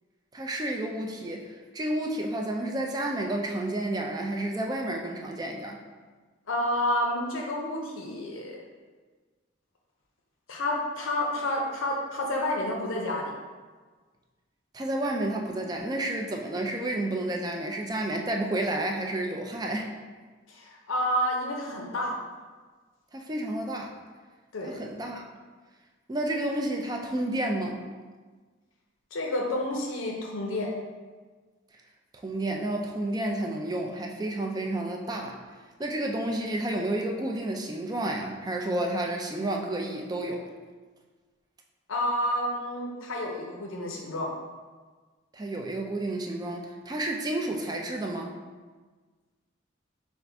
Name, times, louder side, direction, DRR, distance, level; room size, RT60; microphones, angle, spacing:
voice 1, 0.3-5.8 14.7-19.9 23.1-23.9 24.6-25.2 26.1-27.8 32.2-35.4 35.8-40.5 45.3-48.3, right 1 dB, 20° right, 1 dB, 0.4 m, -30 dB
voice 2, 6.5-8.6 10.5-13.3 20.5-22.2 24.5-24.7 29.1-30.7 41.9-44.3, left 1 dB, 85° left, 0 dB, 0.6 m, -29 dB
5.2 x 2.5 x 3.4 m, 1.4 s
head